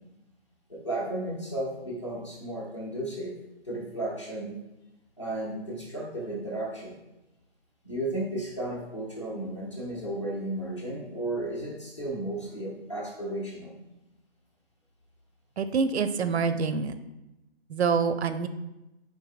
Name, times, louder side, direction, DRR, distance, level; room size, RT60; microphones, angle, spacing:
voice 1, 0.7-3.3 3.6-4.6 5.2-7.0 7.8-13.7, right 1 dB, 30° left, -4 dB, 0.7 m, -34 dB
voice 2, 15.6-16.9 17.7-18.5, right 5 dB, 85° right, 10 dB, 0.5 m, -26 dB
4.6 x 3.5 x 2.4 m, 0.95 s
hypercardioid pair, 175°, 32 cm